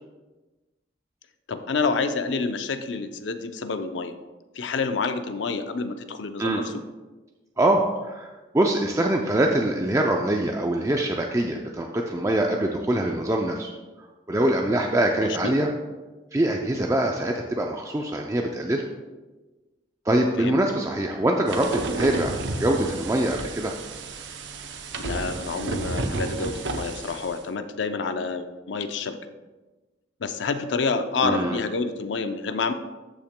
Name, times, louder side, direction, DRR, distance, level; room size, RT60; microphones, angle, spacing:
voice 1, 1.5-4.1 4.6-6.7 15.2-15.6 20.4-20.6 25.0-29.2 30.2-32.7, left 4 dB, 85° left, 9 dB, 0.5 m, -28 dB
voice 2, 7.6-13.7 14.3-15.7 16.3-18.8 20.1-23.7 31.2-31.6, right 1 dB, 15° right, 1 dB, 0.4 m, -24 dB
sound 1, 21.5-27.4, right 2 dB, 85° right, 0.7 m, -31 dB
13.0 x 5.7 x 2.2 m, 1.2 s
head